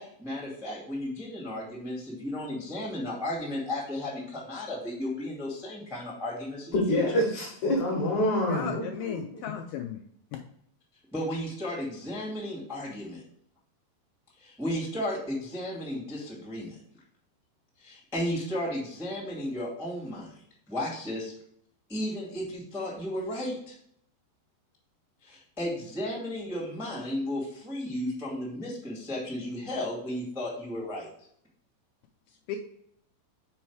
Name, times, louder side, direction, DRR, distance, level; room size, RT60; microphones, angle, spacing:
voice 1, 0.0-7.0 11.1-13.2 14.4-16.8 17.8-20.3 20.7-21.3 21.9-23.7 25.2-31.1, left 1 dB, ahead, -4 dB, 0.8 m, -34 dB
voice 2, 6.7-9.5, left 1 dB, 65° left, -1 dB, 2.1 m, -27 dB
voice 3, 8.5-10.0 10.3-10.4 32.5-32.6, left 9 dB, 80° left, 4 dB, 2.3 m, -35 dB
6.2 x 4.5 x 4.6 m, 0.68 s
omnidirectional pair, 4.8 m